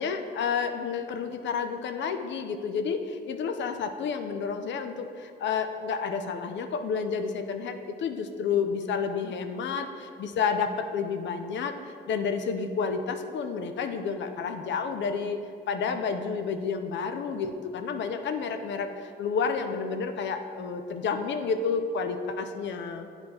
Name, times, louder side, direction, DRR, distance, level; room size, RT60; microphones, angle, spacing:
voice 1, 0.0-11.8 12.1-15.4 15.7-23.1, left 5 dB, 65° left, 7 dB, 0.6 m, -30 dB
8.7 x 3.9 x 4.3 m, 2.3 s
cardioid pair, 90°, 20 cm